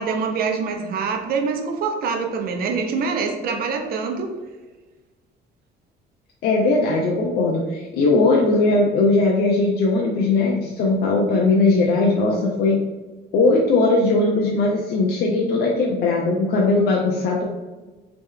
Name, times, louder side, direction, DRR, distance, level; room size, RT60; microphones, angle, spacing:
voice 1, 0.0-4.3, right 5 dB, 65° right, 4 dB, 0.6 m, -25 dB
voice 2, 6.4-12.8 13.3-17.4, left 3 dB, 70° left, -2 dB, 0.6 m, -19 dB
3.2 x 3.0 x 3.6 m, 1.2 s
cardioid pair, 110°, 17 cm